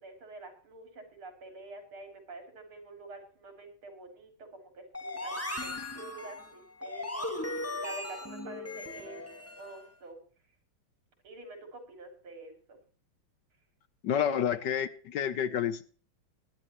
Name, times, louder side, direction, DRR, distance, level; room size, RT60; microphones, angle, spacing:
voice 1, 0.0-10.2 11.2-12.8, right 2 dB, 85° right, 4 dB, 4.0 m, -48 dB
sound 1, 4.9-9.8, left 2 dB, 10° left, 1.2 m, -38 dB
voice 2, 14.0-15.8, left 8 dB, 65° left, 13 dB, 1.3 m, -29 dB
21.5 x 10.5 x 3.0 m, 0.39 s
omnidirectional pair, 2.3 m